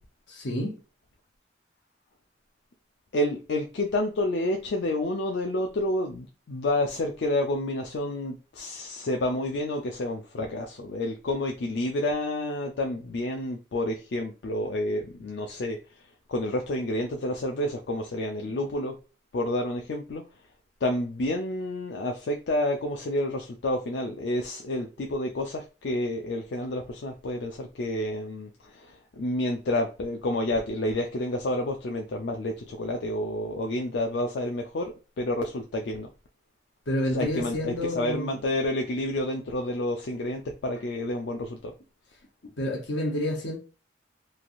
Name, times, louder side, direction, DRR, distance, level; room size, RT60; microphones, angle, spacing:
voice 1, 0.3-0.7 36.9-38.4 42.6-43.6, left 1 dB, 80° left, 0.8 m, -29 dB
voice 2, 3.1-15.8 16.3-19.0 19.3-20.2 20.8-36.1 37.1-41.7, left 1 dB, 65° left, 0.4 m, -29 dB
3.1 x 2.4 x 2.6 m
head